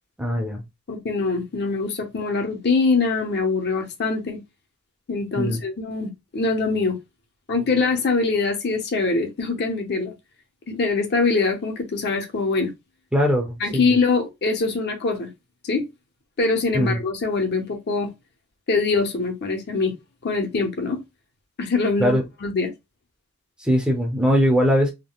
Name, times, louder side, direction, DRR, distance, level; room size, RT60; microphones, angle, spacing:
voice 1, 0.2-0.6 5.4-5.6 13.1-13.9 16.7-17.0 22.0-22.2 23.6-24.9, equal, 5° right, 0.6 m, -21 dB
voice 2, 0.9-4.4 5.1-7.0 7.5-10.1 10.7-12.7 13.6-15.3 15.6-15.9 16.4-18.1 18.7-19.9 20.2-21.0 21.6-22.7, left 4 dB, 50° left, 0.6 m, -23 dB
3.5 x 2.0 x 2.3 m
head